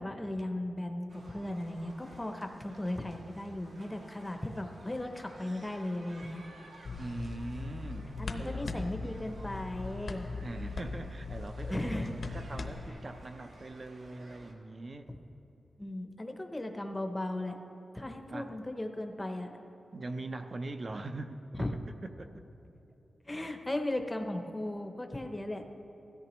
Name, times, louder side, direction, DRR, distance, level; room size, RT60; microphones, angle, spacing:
voice 1, 0.0-6.4 8.2-10.3 11.7-12.2 15.1-15.2 15.8-17.6 17.9-19.6 21.5-21.7 23.2-25.7, left 1 dB, 10° left, 5 dB, 0.7 m, -36 dB
sound 1, 1.1-14.5, right 1 dB, 70° right, 1.5 m, -55 dB
sound 2, 6.8-12.9, left 3 dB, 60° left, 0.8 m, -40 dB
voice 2, 6.9-8.8 10.4-15.1 18.3-18.5 19.9-21.4 22.0-22.4, right 2 dB, 35° right, 7 dB, 0.5 m, -42 dB
16.5 x 13.5 x 3.0 m, 2.9 s
wide cardioid pair, 170°, 0 cm